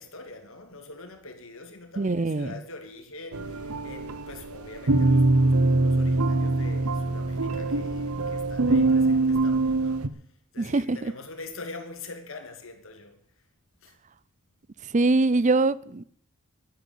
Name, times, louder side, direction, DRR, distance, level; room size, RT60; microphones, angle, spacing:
voice 1, 0.0-10.2 10.5-13.2 13.8-13.9, left 3 dB, 60° left, 2.6 m, -44 dB
voice 2, 2.0-2.5 10.6-11.0 14.9-16.0, right 3 dB, 35° right, 0.5 m, -23 dB
sound 1, 3.3-10.1, right 2 dB, 85° right, 1.0 m, -23 dB
11.5 x 10.0 x 8.3 m
head